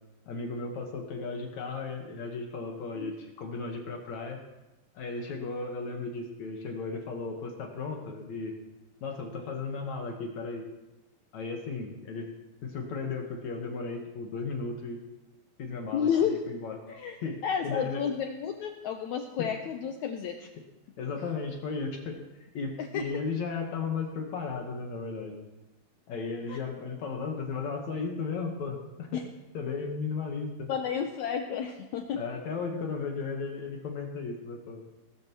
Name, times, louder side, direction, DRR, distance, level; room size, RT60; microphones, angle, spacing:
voice 1, 0.3-4.4 4.9-8.6 9.0-10.7 11.3-12.3 12.6-15.0 15.6-16.8 17.2-17.4 17.6-18.0 19.4-19.5 21.0-22.2 22.5-25.3 26.1-29.2 29.5-30.7 32.1-34.8, left 4 dB, 60° left, 2 dB, 2.3 m, -35 dB
voice 2, 15.9-16.4 16.9-17.2 17.4-20.4 22.8-23.1 26.5-26.6 29.1-29.3 30.7-32.2, left 8 dB, 85° left, 4 dB, 1.6 m, -31 dB
19.5 x 13.0 x 3.1 m, 0.99 s
omnidirectional pair, 4.3 m